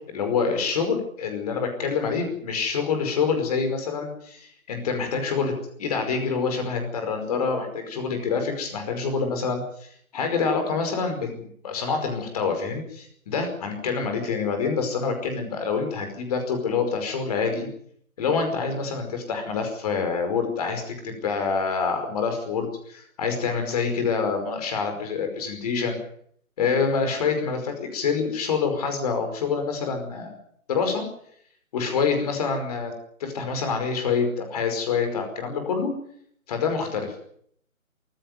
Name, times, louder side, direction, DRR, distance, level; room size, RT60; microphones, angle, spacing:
voice 1, 0.1-5.5 5.8-9.9 10.1-17.7 18.2-26.0 26.6-30.3 30.7-31.1 31.7-32.9 33.2-35.9 36.5-37.1, left 5 dB, 25° left, 6 dB, 5.2 m, -26 dB
22.5 x 15.0 x 9.4 m, 0.66 s
figure-of-eight pair, 155°, 42 cm